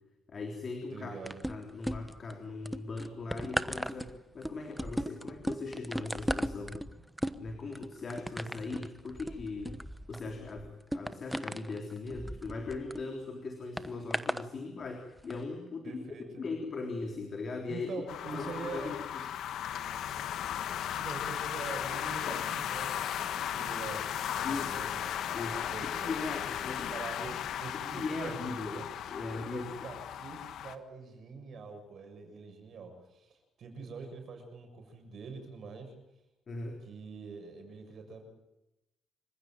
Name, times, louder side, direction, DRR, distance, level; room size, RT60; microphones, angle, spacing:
voice 1, 0.3-1.2 1.5-6.8 7.4-9.8 10.1-16.0 16.4-17.9 18.3-19.2 24.4-24.7 25.3-27.0 27.9-29.7 36.5-36.8, left 3 dB, 45° left, 3 dB, 3.6 m, -39 dB
voice 2, 0.9-1.4 15.8-16.5 17.7-19.0 20.9-24.0 24.4-26.1 26.9-28.9 29.5-35.9 36.9-38.2, right 4 dB, 60° right, 5 dB, 7.0 m, -44 dB
sound 1, 1.3-2.3 2.7-13.0 13.8-14.5 15.2-15.3, equal, 5° right, 1.1 m, -37 dB
sound 2, 18.1-30.8, left 10 dB, 75° left, 1.5 m, -36 dB
27.0 x 15.5 x 9.1 m, 0.95 s
cardioid pair, 90°, 0 cm